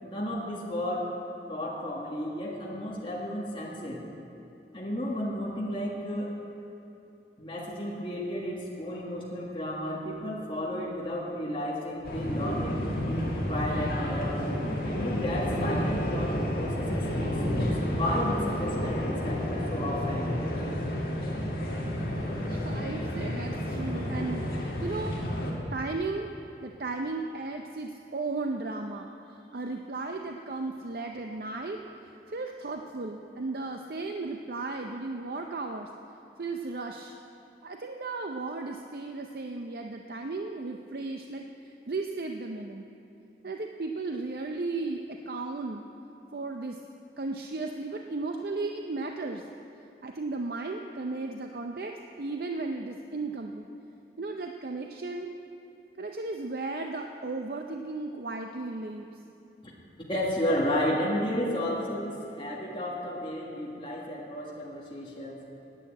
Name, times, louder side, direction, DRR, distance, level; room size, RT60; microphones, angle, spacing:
voice 1, 0.0-1.1 1.5-4.0 4.7-6.3 7.4-14.5 14.8-20.3 59.6-59.7 60.1-65.4, equal, 30° left, -4 dB, 1.7 m, -33 dB
sound 1, 12.0-25.5, equal, 55° left, 2.1 m, -30 dB
voice 2, 22.5-25.2 25.7-26.3 26.6-35.9 36.4-37.2 37.6-42.9 43.4-45.8 46.3-46.8 47.2-49.4 50.0-53.7 54.2-55.3 56.0-59.2, right 3 dB, 55° right, 3 dB, 0.5 m, -35 dB
11.0 x 8.5 x 8.6 m, 2.8 s
head